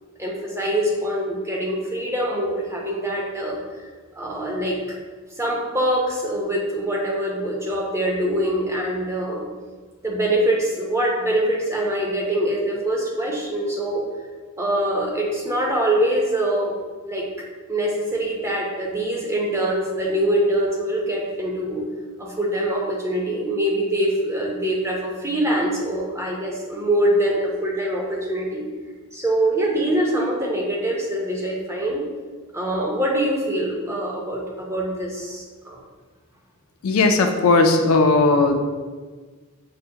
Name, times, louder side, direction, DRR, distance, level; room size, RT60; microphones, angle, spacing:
voice 1, 0.2-3.6 4.2-4.8 5.4-9.4 10.0-14.1 14.6-16.8 17.0-17.2 17.7-21.9 22.2-28.7 29.1-32.0 32.5-35.8, right 1 dB, 10° right, -2 dB, 0.5 m, -24 dB
voice 2, 36.8-38.6, left 3 dB, 65° left, 5 dB, 0.4 m, -17 dB
5.6 x 2.1 x 2.7 m, 1.4 s
head